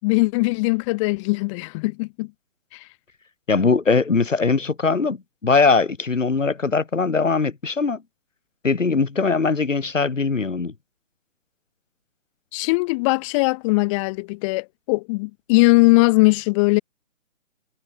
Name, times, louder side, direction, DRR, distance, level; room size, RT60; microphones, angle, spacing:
voice 1, 0.0-2.3 2.7-2.8 12.5-16.8, left 26 dB, 25° left, 5.0 m, -20 dB
voice 2, 3.5-5.2 5.4-8.0 8.6-10.7, left 4 dB, 75° left, 7.2 m, -20 dB
figure-of-eight pair, 145°, 38 cm